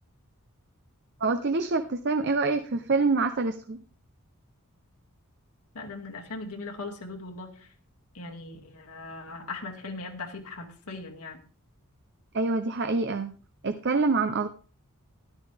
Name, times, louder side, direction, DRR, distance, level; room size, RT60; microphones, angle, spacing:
voice 1, 1.2-3.8 12.3-13.3 13.6-14.5, right 3 dB, 50° right, 8 dB, 0.7 m, -26 dB
voice 2, 5.7-7.7 8.1-11.4, left 3 dB, 85° left, 2 dB, 2.4 m, -39 dB
13.0 x 11.5 x 3.5 m, 0.38 s
head